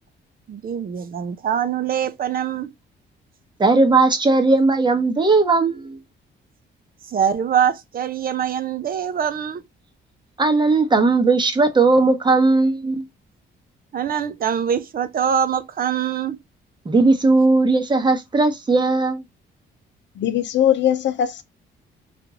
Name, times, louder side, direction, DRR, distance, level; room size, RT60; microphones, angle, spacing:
voice 1, 0.5-2.7 7.1-9.6 13.9-16.4, right 8 dB, 45° right, 0.6 m, -23 dB
voice 2, 3.6-6.0 10.4-13.0 16.8-19.2, right 3 dB, 20° right, 1.0 m, -17 dB
voice 3, 20.2-21.4, left 10 dB, 65° left, 0.6 m, -20 dB
3.6 x 2.5 x 2.8 m
cardioid pair, 90°, 20 cm